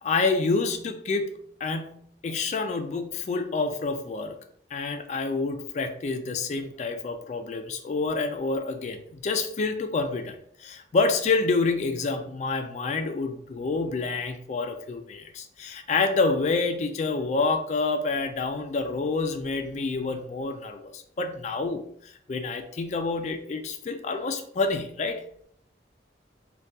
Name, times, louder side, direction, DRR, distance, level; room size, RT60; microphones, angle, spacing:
voice 1, 0.0-4.4 4.7-21.9 22.3-25.2, left 3 dB, 40° left, 6 dB, 0.3 m, -28 dB
2.7 x 2.2 x 3.4 m, 0.64 s
head